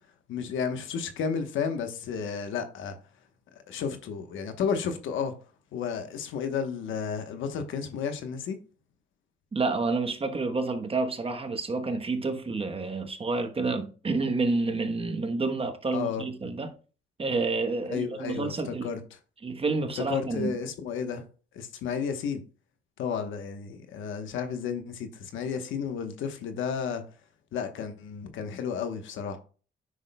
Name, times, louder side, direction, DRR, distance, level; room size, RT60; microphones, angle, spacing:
voice 1, 0.3-3.0 3.7-5.3 5.7-8.6 15.9-16.2 17.9-19.0 20.0-21.2 21.5-22.4 23.0-27.0 27.5-29.4, left 6 dB, 80° left, 1.1 m, -32 dB
voice 2, 9.5-16.7 17.2-18.9 19.4-20.6, right 3 dB, 30° right, 1.1 m, -29 dB
9.5 x 6.3 x 2.3 m
cardioid pair, 90°, 20 cm